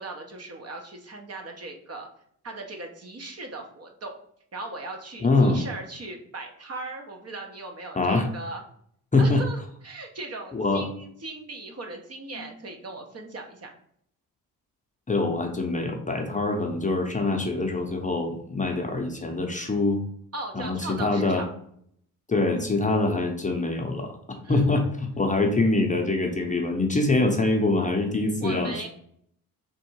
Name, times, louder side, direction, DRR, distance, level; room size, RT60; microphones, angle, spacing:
voice 1, 0.0-2.1 2.4-4.1 4.5-8.6 9.2-13.7 20.3-21.5 24.4-24.6 28.4-28.9, right 2 dB, 40° right, 3 dB, 1.0 m, -38 dB
voice 2, 5.2-5.6 8.0-8.3 9.1-9.4 10.5-10.8 15.1-20.0 20.5-21.4 22.3-28.9, left 2 dB, 20° left, 2 dB, 0.7 m, -24 dB
3.6 x 2.6 x 4.6 m, 0.66 s
cardioid pair, 70°, 38 cm